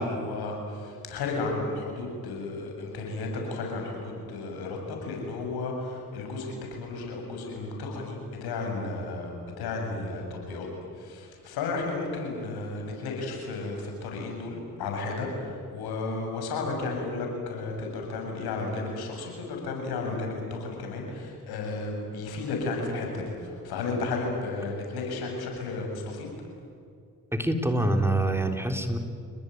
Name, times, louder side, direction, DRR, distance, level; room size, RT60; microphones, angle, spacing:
voice 1, 0.0-9.3 9.6-26.3, left 3 dB, 85° left, 1 dB, 7.7 m, -33 dB
voice 2, 27.3-29.0, right 1 dB, 5° right, 5 dB, 3.6 m, -25 dB
29.5 x 19.5 x 9.4 m, 2.4 s
supercardioid pair, 60°, 37 cm